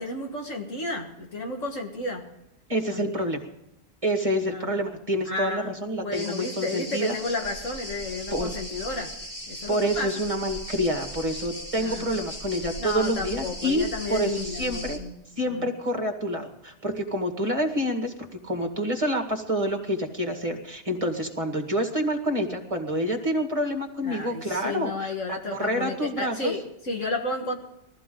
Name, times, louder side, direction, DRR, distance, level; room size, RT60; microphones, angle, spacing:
voice 1, 0.0-2.3 2.9-3.3 4.4-4.7 5.3-5.7 6.0-9.1 9.5-10.1 11.8-12.1 12.8-15.1 15.5-15.7 24.0-27.5, left 2 dB, 65° left, 2 dB, 2.1 m, -32 dB
voice 2, 2.7-3.4 4.0-7.2 8.3-8.5 9.7-13.8 14.1-15.0 15.4-18.1 18.4-26.5, equal, 25° right, 4 dB, 2.0 m, -27 dB
sound 1, 6.1-15.0, equal, 25° left, 3.5 m, -38 dB
21.0 x 14.5 x 3.9 m, 0.86 s
omnidirectional pair, 1.4 m